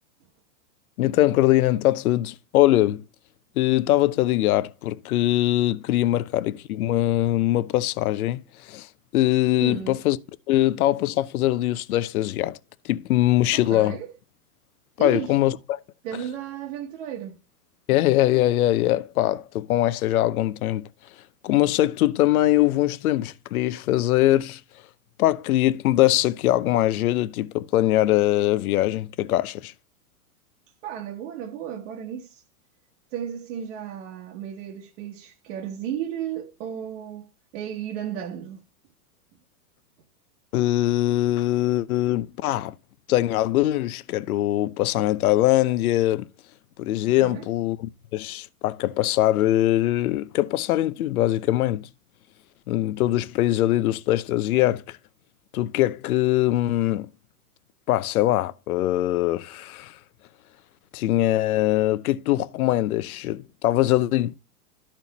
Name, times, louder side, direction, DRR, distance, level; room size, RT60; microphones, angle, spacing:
voice 1, 1.0-3.0 3.6-8.9 9.1-10.2 10.5-12.6 12.8-14.0 15.0-15.8 17.9-20.9 21.4-24.6 25.2-29.7 40.5-42.7 43.1-46.3 46.8-51.9 52.7-55.0 55.5-57.1 57.9-60.0 60.9-64.3, left 15 dB, 70° left, 0.7 m, -22 dB
voice 2, 9.6-10.0 13.5-14.1 15.0-15.4 16.0-17.4 30.8-32.4 33.1-37.3 37.5-38.6 47.2-47.5, right 9 dB, 50° right, 1.2 m, -34 dB
12.5 x 4.5 x 4.0 m
supercardioid pair, 150°, 46 cm